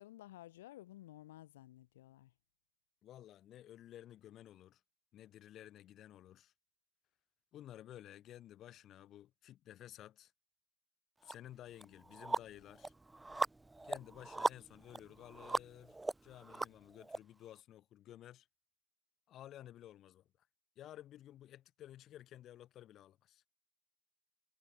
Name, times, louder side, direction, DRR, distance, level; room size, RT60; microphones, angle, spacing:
voice 1, 0.0-2.3, left 15 dB, 65° left, 1.9 m, -54 dB
voice 2, 3.0-4.8 5.1-6.5 7.5-10.3 11.2-12.9 13.8-16.0 16.2-18.5 19.3-20.5 20.7-23.4, left 12 dB, 35° left, 1.9 m, -54 dB
sound 1, 11.3-11.4 11.8-17.2, right 2 dB, 5° right, 0.6 m, -39 dB
hypercardioid pair, 115°, 0 cm